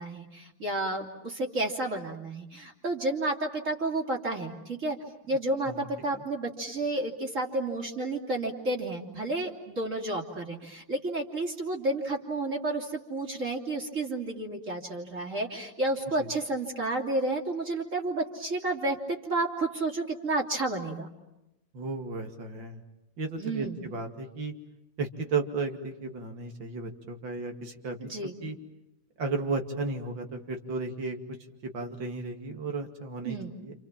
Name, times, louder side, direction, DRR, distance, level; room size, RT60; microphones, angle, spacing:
voice 1, 0.0-5.0 5.3-21.1 23.4-23.8 28.0-28.3 33.2-33.5, right 2 dB, 40° right, 1 dB, 3.2 m, -31 dB
voice 2, 21.7-22.8 23.2-24.5 25.0-28.6 29.2-31.2 31.7-33.7, right 3 dB, 85° right, 5 dB, 3.1 m, -34 dB
28.0 x 28.0 x 7.4 m, 0.90 s
omnidirectional pair, 2.0 m